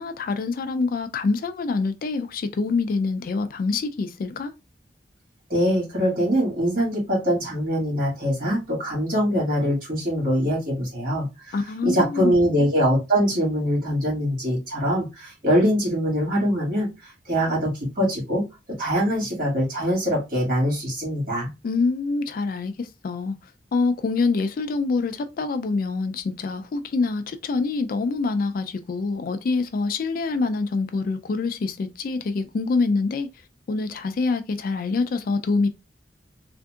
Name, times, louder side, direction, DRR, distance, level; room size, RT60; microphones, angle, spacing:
voice 1, 0.0-4.5 11.5-12.3 21.6-23.4 23.7-33.3 33.7-35.7, left 4 dB, 55° left, 0.4 m, -25 dB
voice 2, 5.5-11.5 11.8-16.9 17.3-18.4 18.8-21.5, equal, 55° right, 1.9 m, -23 dB
3.5 x 2.6 x 2.3 m
head